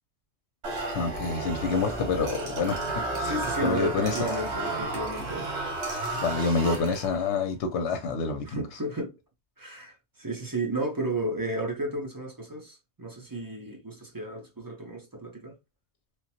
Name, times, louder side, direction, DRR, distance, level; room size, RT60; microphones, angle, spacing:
sound 1, 0.6-7.3, right 2 dB, 80° right, 1.1 m, -32 dB
voice 1, 0.9-2.8 3.1-4.3 6.2-8.8, left 4 dB, 90° left, 0.9 m, -28 dB
sound 2, 2.3-3.8 4.1-5.5 5.8-7.1, right 3 dB, 55° right, 1.1 m, -46 dB
voice 2, 3.2-5.5 8.5-9.1 9.6-15.5, right 1 dB, 25° right, 0.5 m, -33 dB
3.2 x 2.0 x 2.8 m
omnidirectional pair, 1.1 m